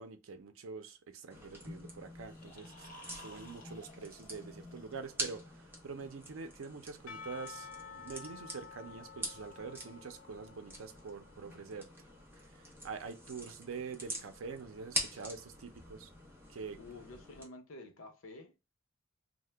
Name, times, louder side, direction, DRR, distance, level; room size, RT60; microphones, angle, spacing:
voice 1, 0.0-11.9 12.5-16.1 16.5-16.8, right 5 dB, 80° right, 0.5 m, -45 dB
sound 1, 1.3-17.5, right 1 dB, 10° right, 0.6 m, -45 dB
sound 2, 2.1-5.3, left 1 dB, 40° left, 0.8 m, -55 dB
Percussion / Church bell, 7.1-11.5, left 5 dB, 65° left, 0.3 m, -51 dB
voice 2, 16.8-18.6, left 2 dB, 80° left, 0.7 m, -50 dB
2.8 x 2.1 x 3.3 m
head